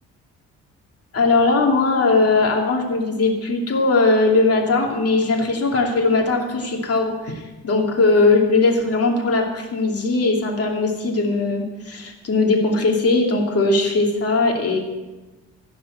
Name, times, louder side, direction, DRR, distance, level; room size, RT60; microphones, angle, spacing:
voice 1, 1.1-14.8, left 3 dB, 50° left, 0 dB, 2.8 m, -19 dB
15.5 x 5.4 x 7.9 m, 1.2 s
cardioid pair, 90°, 30 cm